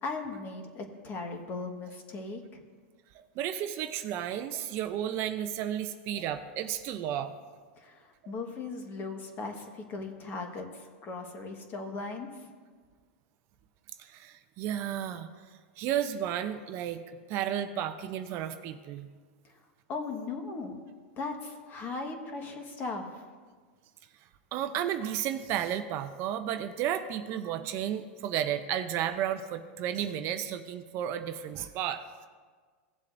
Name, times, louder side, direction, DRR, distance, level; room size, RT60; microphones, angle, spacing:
voice 1, 0.0-2.6 7.8-10.7 11.0-12.5 19.9-20.8 21.1-23.1, left 3 dB, 30° left, 4 dB, 1.4 m, -38 dB
voice 2, 3.4-7.3 8.2-8.4 14.0-15.3 15.8-17.0 17.3-19.1 24.5-32.0, right 10 dB, 40° right, 9 dB, 0.6 m, -33 dB
17.5 x 7.5 x 2.6 m, 1.5 s
supercardioid pair, 140°, 6 cm